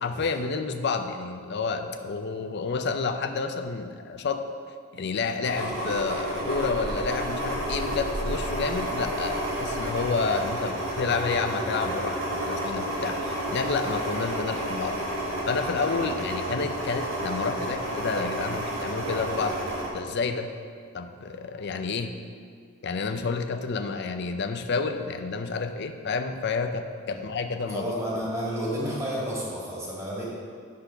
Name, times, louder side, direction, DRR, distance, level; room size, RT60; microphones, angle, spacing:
voice 1, 0.0-4.4 4.9-15.0 15.5-19.6 19.9-20.5 20.9-22.1 22.8-28.2, left 4 dB, 55° left, 7 dB, 0.5 m, -30 dB
sound 1, 5.4-19.9, right 1 dB, 85° right, 1.8 m, -31 dB
voice 2, 27.7-30.2, equal, 15° right, -7 dB, 2.0 m, -31 dB
10.5 x 4.1 x 5.7 m, 2.1 s
head